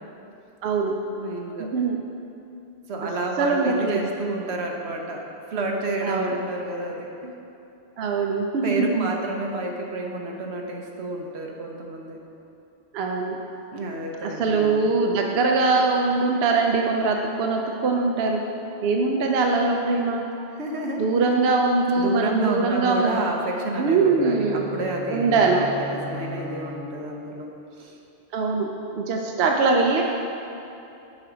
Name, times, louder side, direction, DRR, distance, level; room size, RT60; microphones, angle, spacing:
voice 1, 0.6-1.0 1.6-2.0 3.4-4.1 6.0-6.4 8.0-9.1 12.9-13.4 14.2-18.5 18.8-20.3 21.0-23.1 23.8-24.7 25.1-25.7 28.3-30.0, right 3 dB, 75° right, 1 dB, 0.8 m, -22 dB
voice 2, 1.1-1.7 2.9-5.2 5.5-7.3 8.6-12.2 13.7-14.9 20.6-21.0 22.0-27.5 27.8-28.0, right 2 dB, 90° right, 1 dB, 1.1 m, -30 dB
sound 1, 23.8-27.4, right 1 dB, 40° left, 1.6 m, -38 dB
7.4 x 5.1 x 4.9 m, 2.8 s
omnidirectional pair, 1.1 m